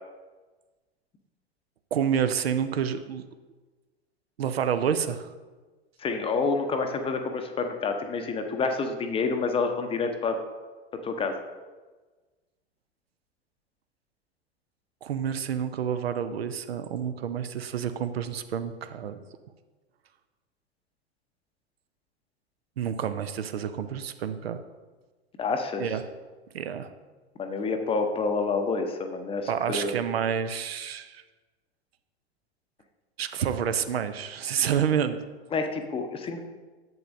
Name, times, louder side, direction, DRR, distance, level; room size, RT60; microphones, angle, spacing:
voice 1, 1.9-3.2 4.4-5.3 15.0-19.2 22.8-24.6 25.8-26.0 26.5-26.9 29.5-31.2 33.2-35.2, right 8 dB, 65° right, 10 dB, 0.6 m, -29 dB
voice 2, 6.0-10.4 11.0-11.4 25.4-25.9 27.4-29.9 35.5-36.5, left 4 dB, 15° left, 5 dB, 0.7 m, -28 dB
10.5 x 7.6 x 2.6 m, 1.3 s
figure-of-eight pair, 90°, 33 cm